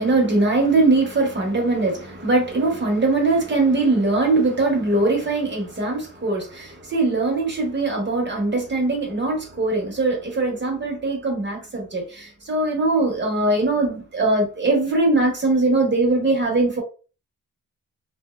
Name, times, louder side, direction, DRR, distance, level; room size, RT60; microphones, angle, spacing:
voice 1, 0.0-16.8, right 2 dB, 35° right, 0.8 m, -21 dB
2.6 x 2.1 x 2.2 m
wide cardioid pair, 115°, 34 cm